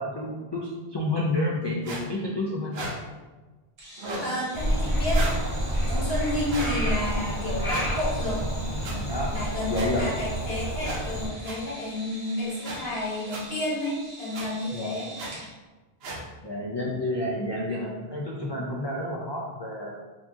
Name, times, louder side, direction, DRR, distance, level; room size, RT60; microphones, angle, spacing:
voice 1, 0.0-2.9 5.8-6.1 8.8-9.3 9.7-10.0 14.7-14.9 16.4-19.9, left 1 dB, 45° left, -3 dB, 0.3 m, -30 dB
sound 1, 1.8-2.0 2.7-2.9 4.0-4.3 5.1-5.4 6.5-6.7 7.7-7.9 8.8-8.9 9.7-9.9 10.8-11.0 11.4-11.6 12.6-12.8 13.3-13.4 14.3-14.5 15.2-15.3 16.0-16.2, right 2 dB, 75° right, 1.0 m, -34 dB
sound 2, 3.8-15.5, right 1 dB, 40° right, 0.9 m, -45 dB
voice 2, 4.2-5.2 5.9-8.4 9.3-15.1, left 1 dB, 70° left, -7 dB, 1.5 m, -31 dB
Frog, 4.5-11.3, right 1 dB, 10° left, 1.2 m, -28 dB
4.5 x 2.9 x 2.7 m, 1.2 s
omnidirectional pair, 1.1 m